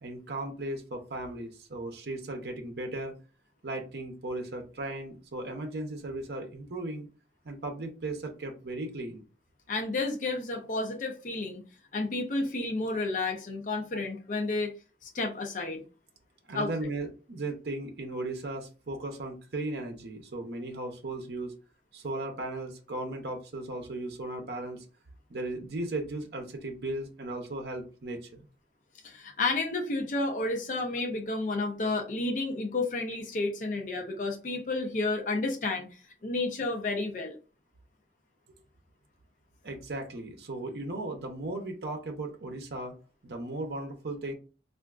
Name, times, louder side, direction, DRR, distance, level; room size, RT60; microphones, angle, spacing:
voice 1, 0.0-3.1 3.6-7.1 7.4-9.2 16.5-21.5 21.9-24.8 25.3-28.5 39.6-42.9 43.2-44.3, right 2 dB, 65° right, 3 dB, 0.6 m, -36 dB
voice 2, 9.7-11.6 11.9-14.7 15.0-15.8 16.5-16.7 29.0-35.9 36.2-37.4, left 2 dB, 45° left, 1 dB, 0.5 m, -31 dB
3.4 x 2.5 x 2.3 m, 0.34 s
head